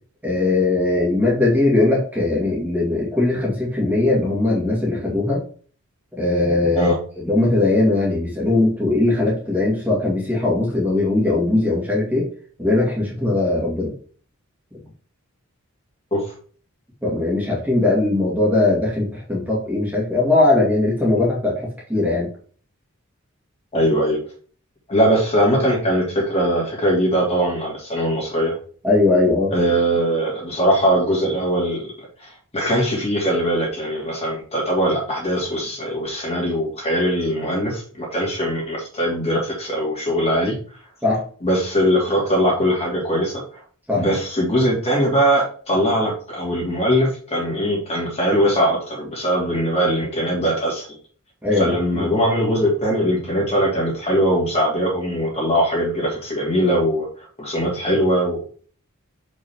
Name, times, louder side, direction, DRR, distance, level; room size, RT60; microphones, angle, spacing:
voice 1, 0.2-5.4 6.2-6.9 7.2-12.3 12.6-13.9 17.0-22.3 28.8-29.5 41.0-41.2 43.9-44.0 51.4-52.0, left 2 dB, 10° right, -5 dB, 2.0 m, -19 dB
voice 2, 23.7-24.2 24.9-28.6 29.5-40.5 41.4-43.6 43.9-50.9 51.5-57.1 57.4-58.4, equal, 30° left, -2 dB, 2.6 m, -21 dB
6.6 x 5.3 x 3.6 m, 0.43 s
head